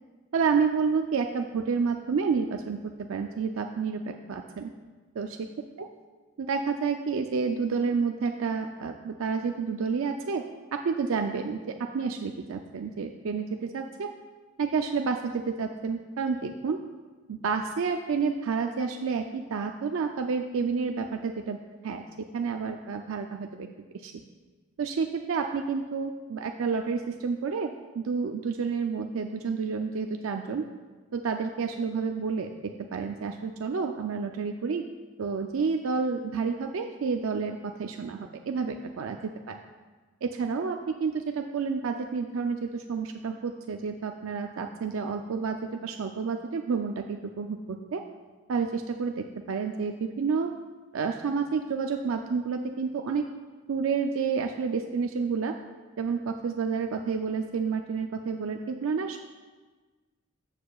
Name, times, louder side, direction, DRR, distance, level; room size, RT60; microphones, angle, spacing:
voice 1, 0.3-4.7 5.2-5.5 5.8-5.9 6.4-10.4 10.7-14.1 14.6-16.8 17.3-21.6 21.8-22.0 22.3-23.7 23.9-24.1 24.8-27.7 27.9-30.7 31.1-34.8 35.2-39.6 40.2-48.0 48.5-50.5 50.9-53.3 53.7-55.5 56.0-59.2, right 5 dB, 85° right, 4 dB, 0.4 m, -30 dB
13.0 x 7.3 x 2.3 m, 1.4 s
head